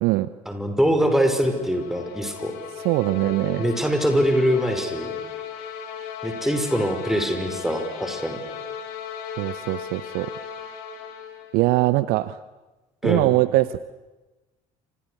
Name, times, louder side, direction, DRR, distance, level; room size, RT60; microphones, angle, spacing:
voice 1, 0.5-2.5 3.6-5.1 6.2-8.4 13.0-13.3, equal, ahead, 5 dB, 5.5 m, -23 dB
sound 1, 1.1-11.6, left 7 dB, 55° left, 3.4 m, -36 dB
voice 2, 2.8-3.7 9.4-10.3 11.5-12.4 13.0-13.8, right 18 dB, 55° right, 17 dB, 0.8 m, -22 dB
29.0 x 26.5 x 6.6 m, 1.1 s
figure-of-eight pair, 60°, 19 cm